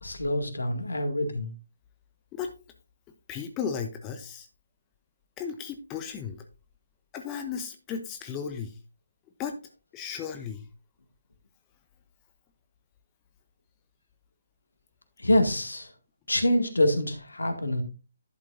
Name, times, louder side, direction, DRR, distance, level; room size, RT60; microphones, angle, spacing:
voice 1, 0.0-1.5 15.2-15.9 16.3-17.8, left 1 dB, 70° left, 6 dB, 2.0 m, -25 dB
voice 2, 3.3-4.5 5.4-6.4 7.1-8.8 9.4-9.6 9.9-10.7, left 7 dB, 15° left, 6 dB, 0.7 m, -35 dB
11.0 x 7.7 x 2.6 m, 0.31 s
figure-of-eight pair, 140°, 0 cm